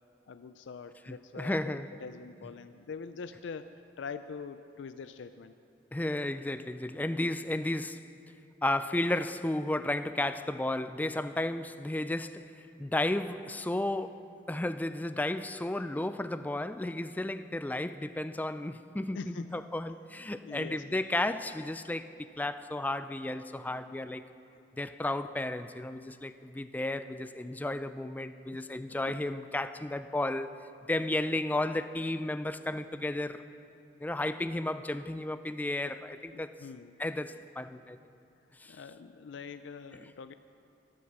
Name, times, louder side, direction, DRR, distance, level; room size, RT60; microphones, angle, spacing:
voice 1, 0.3-3.7 4.0-5.5 19.1-19.6 20.4-21.1 28.5-28.7 36.3-36.9 38.7-40.3, left 5 dB, 85° left, 10 dB, 0.4 m, -44 dB
voice 2, 1.1-1.9 5.9-8.0 8.6-24.2 24.8-30.5 30.9-33.4 34.0-36.5 37.0-38.0 38.6-38.8 39.9-40.1, left 1 dB, 10° left, 11 dB, 0.3 m, -33 dB
14.0 x 11.5 x 6.0 m, 2.5 s
head